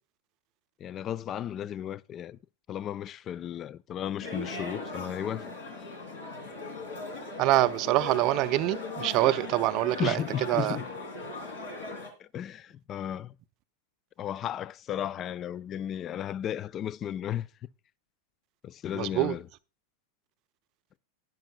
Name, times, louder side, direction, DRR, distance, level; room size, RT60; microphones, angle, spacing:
voice 1, 0.8-2.4 2.7-5.5 10.0-10.9 12.2-13.3 14.2-17.5 18.6-19.5, left 10 dB, 30° left, 0.4 m, -34 dB
sound 1, 4.2-12.1, left 2 dB, 65° left, 2.6 m, -39 dB
voice 2, 7.4-10.2 10.5-10.8 18.9-19.3, right 16 dB, 40° right, 0.5 m, -25 dB
12.5 x 11.0 x 2.2 m
figure-of-eight pair, 90°, 0 cm